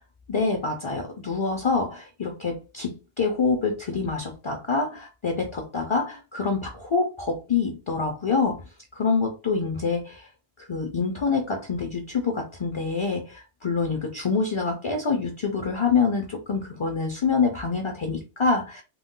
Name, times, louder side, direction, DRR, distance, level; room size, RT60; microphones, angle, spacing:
voice 1, 0.3-8.6 8.9-10.3 10.6-18.8, left 4 dB, 40° left, 0.4 m, -26 dB
2.3 x 2.2 x 3.6 m
omnidirectional pair, 1.0 m